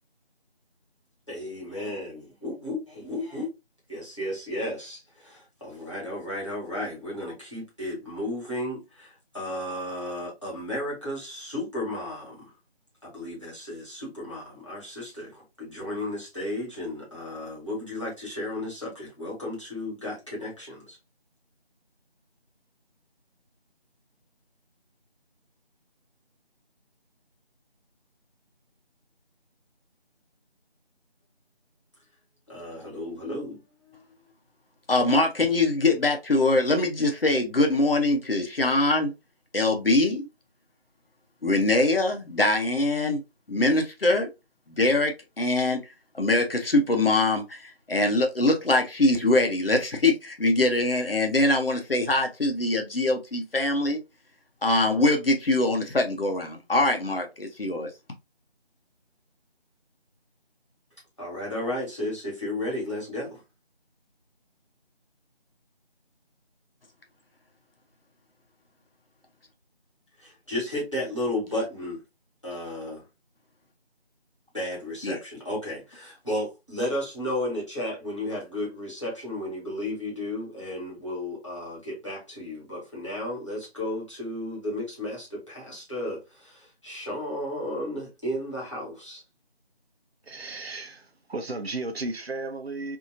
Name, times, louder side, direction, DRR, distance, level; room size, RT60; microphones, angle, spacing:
voice 1, 1.3-3.5 3.9-12.5 13.0-21.0 32.5-33.6 61.2-63.4 70.2-72.0 72.4-73.0 74.5-89.2, left 1 dB, 30° left, 1.3 m, -33 dB
voice 2, 34.9-39.1 39.5-40.3 41.4-43.2 43.5-44.3 44.8-45.8 46.1-54.0 54.6-57.9 75.0-75.2, left 2 dB, 60° left, 0.8 m, -23 dB
voice 3, 90.3-93.0, right 2 dB, 70° right, 0.7 m, -34 dB
2.7 x 2.6 x 2.5 m
figure-of-eight pair, 180°, 32 cm